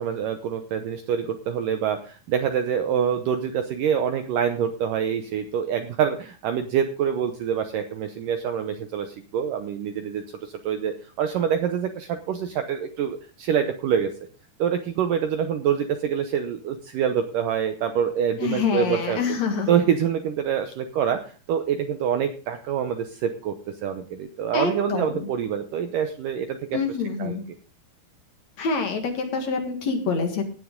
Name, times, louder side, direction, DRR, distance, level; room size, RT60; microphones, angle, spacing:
voice 1, 0.0-14.1 14.6-19.2 19.7-21.2 21.5-26.8 27.2-27.4, right 8 dB, 75° right, 7 dB, 2.0 m, -26 dB
voice 2, 18.4-19.7 24.5-25.3 26.7-27.4 28.6-30.4, left 5 dB, 50° left, 4 dB, 2.4 m, -26 dB
17.0 x 9.4 x 3.7 m, 0.37 s
omnidirectional pair, 4.9 m